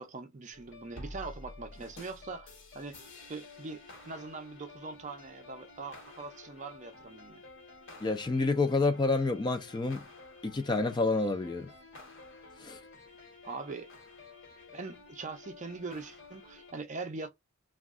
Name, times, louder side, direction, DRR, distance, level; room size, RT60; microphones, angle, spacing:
voice 1, 0.0-7.4 13.4-13.9 14.7-17.3, right 3 dB, 35° right, 0.5 m, -42 dB
sound 1, 0.5-16.7, left 2 dB, 60° left, 1.2 m, -51 dB
voice 2, 8.0-10.0 10.4-11.7 12.6-12.8, left 3 dB, 20° left, 0.4 m, -28 dB
2.4 x 2.2 x 3.5 m
head